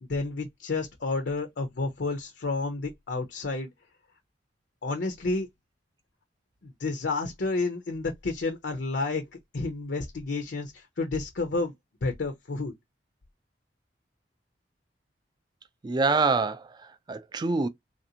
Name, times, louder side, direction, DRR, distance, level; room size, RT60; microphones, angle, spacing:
voice 1, 0.0-3.7 4.8-5.5 6.6-9.2 9.5-11.7 12.0-12.7, left 3 dB, 70° left, 0.6 m, -30 dB
voice 2, 15.8-17.7, right 3 dB, 25° right, 0.3 m, -26 dB
3.3 x 2.5 x 2.7 m
head